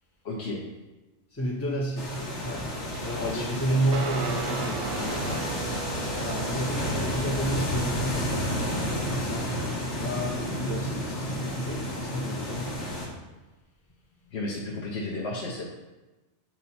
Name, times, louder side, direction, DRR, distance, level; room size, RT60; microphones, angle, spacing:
voice 1, 0.2-0.6 3.1-3.4 14.3-15.6, left 2 dB, 65° left, -3 dB, 1.1 m, -33 dB
voice 2, 1.3-2.2 2.4-5.8 6.1-8.6 8.9-9.5 10.0-12.8, right 1 dB, 20° left, -2 dB, 0.4 m, -31 dB
sound 1, 2.0-13.1, equal, 85° left, 1.7 m, -31 dB
Guitar, 3.9-13.0, right 4 dB, 65° right, 0.7 m, -39 dB
7.1 x 4.6 x 4.2 m, 1.1 s
omnidirectional pair, 1.2 m